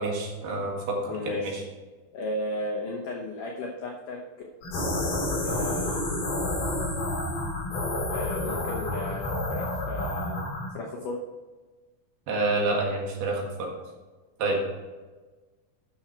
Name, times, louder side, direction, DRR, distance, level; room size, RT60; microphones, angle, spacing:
voice 1, 0.0-1.6 12.3-13.7 14.4-14.6, right 2 dB, 65° right, -1 dB, 3.4 m, -28 dB
voice 2, 1.1-1.5 2.1-4.2 5.4-6.1 8.1-10.4 10.7-11.2, left 1 dB, 80° left, -1 dB, 1.8 m, -35 dB
sound 1, 4.6-10.7, left 1 dB, 55° left, 4.9 m, -29 dB
12.0 x 6.4 x 4.5 m, 1.3 s
omnidirectional pair, 5.3 m